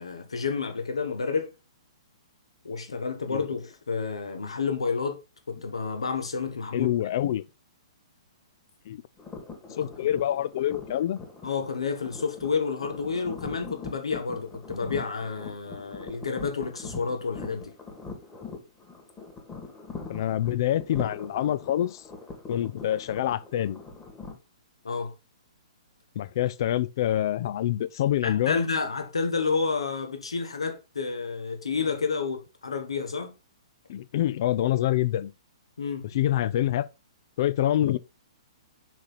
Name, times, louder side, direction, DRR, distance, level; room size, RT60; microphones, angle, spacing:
voice 1, 0.0-1.5 2.6-5.2 5.5-6.9 7.2-7.3 9.8-9.9 11.4-17.7 24.8-25.1 28.2-33.3 35.8-36.0, left 5 dB, 70° left, 1.4 m, -30 dB
voice 2, 6.7-7.4 8.9-9.0 9.8-11.2 20.1-22.0 22.5-23.8 26.2-28.6 33.9-35.3 36.1-36.9 37.4-38.0, left 12 dB, 45° left, 0.4 m, -26 dB
sound 1, 9.2-24.3, left 4 dB, 15° left, 2.1 m, -42 dB
6.3 x 4.3 x 4.0 m
figure-of-eight pair, 120°, 3 cm